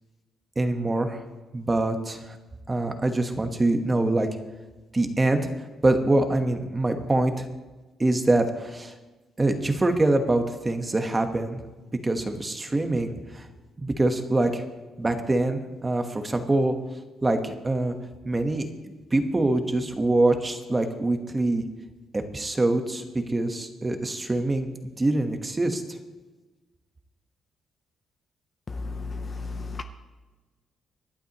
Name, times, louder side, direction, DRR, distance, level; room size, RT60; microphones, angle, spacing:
voice 1, 0.6-1.2 1.5-2.3 2.7-4.3 4.9-5.4 5.8-7.5 8.0-8.9 9.4-11.6 12.0-13.5 13.8-14.6 15.0-16.7 17.2-17.9 18.2-18.7 19.1-21.7 22.1-24.7 25.0-26.0, right 2 dB, 15° right, 6 dB, 1.2 m, -24 dB
voice 2, 28.7-29.8, left 3 dB, 25° left, 7 dB, 0.7 m, -33 dB
26.5 x 11.5 x 3.0 m, 1.2 s
cardioid pair, 160°, 0 cm